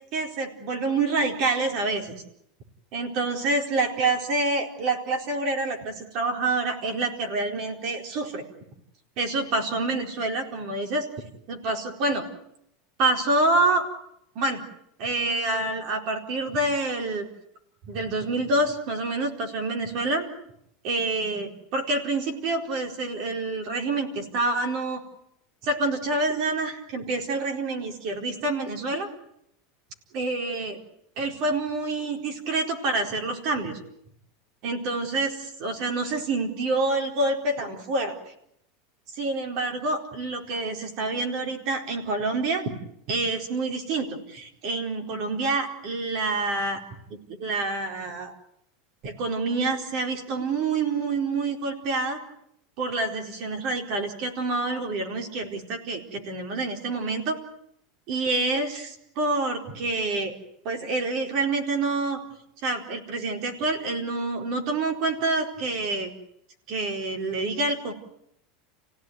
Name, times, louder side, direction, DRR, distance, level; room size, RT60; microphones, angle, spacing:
voice 1, 0.1-2.1 2.9-8.4 9.2-11.1 11.5-12.3 13.0-13.8 14.3-14.6 15.0-17.3 17.8-20.3 20.8-25.0 25.6-29.1 30.1-30.8 31.2-33.8 34.6-38.3 39.1-42.6 43.1-46.8 47.1-48.3 49.0-52.2 52.8-57.4 58.1-60.3 60.6-62.2 62.6-66.1 66.7-67.9, right 2 dB, 40° right, 3 dB, 4.3 m, -27 dB
29.5 x 17.0 x 9.5 m, 0.75 s
supercardioid pair, 175°, 0 cm